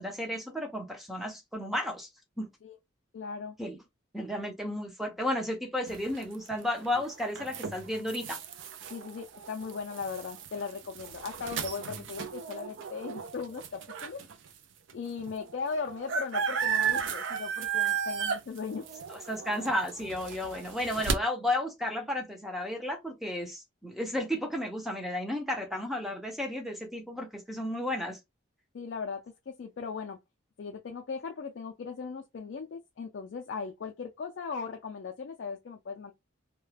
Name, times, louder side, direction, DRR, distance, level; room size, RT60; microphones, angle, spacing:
voice 1, 0.0-2.1 2.4-2.5 3.6-3.8 4.1-8.4 19.3-28.2, left 1 dB, ahead, 0.5 m, -33 dB
voice 2, 3.1-3.6 8.9-14.2 14.9-18.9 28.7-30.2 30.6-36.1, left 5 dB, 55° left, 0.3 m, -38 dB
sound 1, 5.9-14.3 14.9-15.0 15.2-21.1, right 7 dB, 65° right, 0.4 m, -34 dB
2.3 x 2.1 x 3.2 m
head